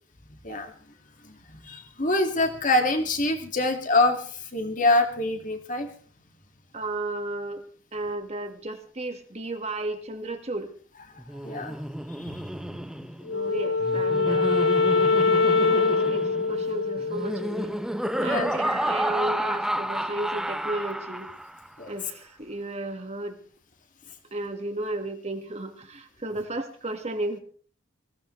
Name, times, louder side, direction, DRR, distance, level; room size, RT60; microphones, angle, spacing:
voice 1, 1.2-5.9 11.4-11.8 12.2-12.8 18.2-18.5 21.8-21.9, left 2 dB, 40° left, 5 dB, 2.2 m, -25 dB
voice 2, 6.7-7.6 7.9-10.7 13.3-14.7 15.4-17.7 18.1-21.3 21.9-23.4 24.3-27.4, right 2 dB, 30° right, 6 dB, 1.7 m, -33 dB
Laughter, 11.2-21.7, equal, 5° right, 0.7 m, -31 dB
Wind instrument woodwind instrument, 13.3-17.7, left 4 dB, 65° left, 0.7 m, -23 dB
21.0 x 16.5 x 3.2 m, 0.43 s
head